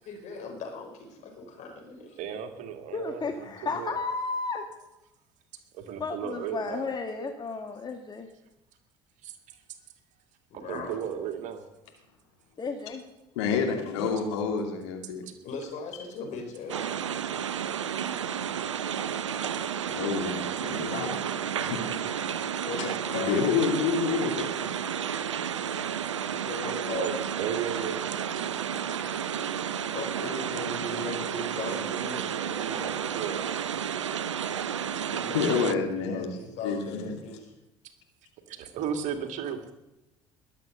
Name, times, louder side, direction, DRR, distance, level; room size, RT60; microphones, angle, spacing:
voice 1, 0.0-2.2 10.5-11.0 13.5-14.1 15.4-17.0 20.6-21.3 22.7-23.4 26.4-27.1 29.9-32.4 35.1-37.5, left 4 dB, 55° left, 2 dB, 5.1 m, -38 dB
voice 2, 2.2-4.0 5.7-6.9 9.2-9.4 10.5-11.6 26.9-28.0 28.3-28.4 31.7-33.5 38.5-39.6, right 7 dB, 55° right, 6 dB, 2.1 m, -35 dB
voice 3, 2.9-4.7 6.0-8.3 12.6-13.0, left 4 dB, 30° left, 4 dB, 1.7 m, -33 dB
voice 4, 13.4-15.2 19.9-21.1 21.6-22.2 23.1-24.7 35.3-36.3 36.6-37.1, left 5 dB, 70° left, 3 dB, 2.6 m, -28 dB
sound 1, 16.7-35.8, right 8 dB, 85° right, 0.5 m, -32 dB
21.0 x 8.3 x 6.9 m, 0.95 s
figure-of-eight pair, 60°, 15 cm